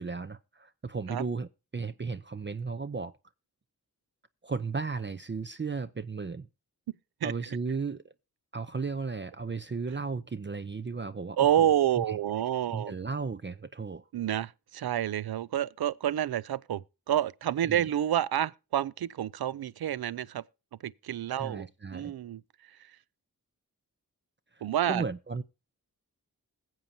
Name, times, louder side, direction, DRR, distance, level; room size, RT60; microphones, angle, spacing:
voice 1, 0.0-3.1 4.4-6.5 7.2-8.1 8.5-12.2 12.7-14.0 17.7-17.8 21.3-22.1 24.5-25.4, right 4 dB, 30° right, 0.6 m, -35 dB
voice 2, 11.4-12.9 14.1-20.4 20.8-22.4 24.6-25.0, right 11 dB, 75° right, 0.5 m, -29 dB
21.0 x 7.5 x 2.7 m
cardioid pair, 55°, 37 cm